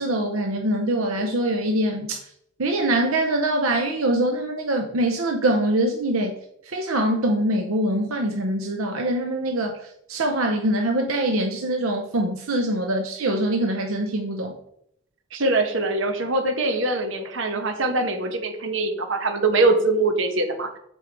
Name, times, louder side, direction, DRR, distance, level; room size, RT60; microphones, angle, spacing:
voice 1, 0.0-2.2 2.6-6.3 6.6-9.8 10.1-14.5, right 1 dB, 90° right, 3 dB, 0.7 m, -23 dB
voice 2, 15.3-20.7, right 2 dB, 65° right, 5 dB, 1.2 m, -23 dB
7.0 x 4.6 x 4.6 m, 0.72 s
head